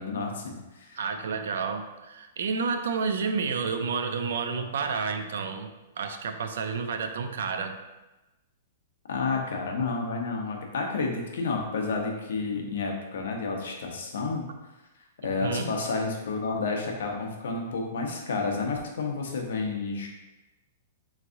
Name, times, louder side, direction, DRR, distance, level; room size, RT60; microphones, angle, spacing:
voice 1, 0.0-1.0 9.1-14.4 15.2-20.1, left 4 dB, 75° left, 1 dB, 0.8 m, -30 dB
voice 2, 1.0-5.7 6.0-7.8 15.4-15.8, right 5 dB, 75° right, 6 dB, 0.4 m, -30 dB
3.5 x 3.2 x 3.8 m, 1.1 s
hypercardioid pair, 175°, 0 cm